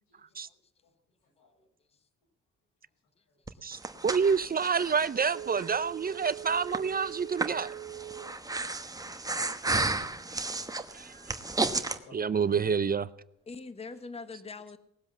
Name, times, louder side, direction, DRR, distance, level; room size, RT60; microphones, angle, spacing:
voice 1, 0.1-0.4 0.8-0.9 1.4-1.7 3.3-3.7 10.9-12.8, left 2 dB, 85° left, 5.5 m, -59 dB
Breathing, 3.5-12.0, right 2 dB, 10° right, 1.1 m, -34 dB
voice 2, 3.6-7.7 10.9-11.2 12.1-13.1, right 6 dB, 30° right, 0.6 m, -28 dB
Telephone, 5.3-8.4 8.8-8.9, right 12 dB, 45° right, 1.0 m, -42 dB
voice 3, 13.5-14.8, left 4 dB, 20° left, 1.0 m, -43 dB
19.0 x 7.8 x 7.2 m
cardioid pair, 90°, 30 cm